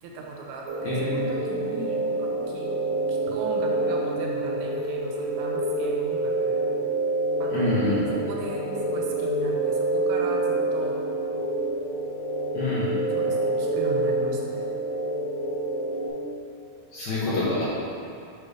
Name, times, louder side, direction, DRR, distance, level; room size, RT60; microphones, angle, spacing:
voice 1, 0.0-2.7 3.1-6.6 7.4-11.0 13.1-14.6, right 2 dB, 85° right, -1 dB, 2.6 m, -37 dB
sound 1, 0.7-16.1, right 2 dB, 60° right, 2.6 m, -27 dB
voice 2, 0.8-1.3 7.5-8.1 12.5-12.9 16.9-17.6, left 2 dB, 70° left, -8 dB, 1.9 m, -26 dB
6.7 x 3.2 x 5.0 m, 2.6 s
omnidirectional pair, 4.4 m